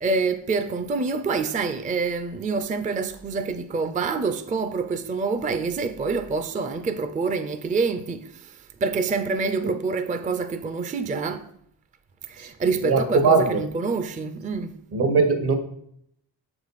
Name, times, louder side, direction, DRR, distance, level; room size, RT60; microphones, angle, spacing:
voice 1, 0.0-11.5 12.3-14.8, right 4 dB, 20° right, 0.4 m, -27 dB
voice 2, 12.8-13.6 14.9-15.5, right 4 dB, 70° right, 1.3 m, -20 dB
6.7 x 4.9 x 4.1 m
cardioid pair, 95°, 40 cm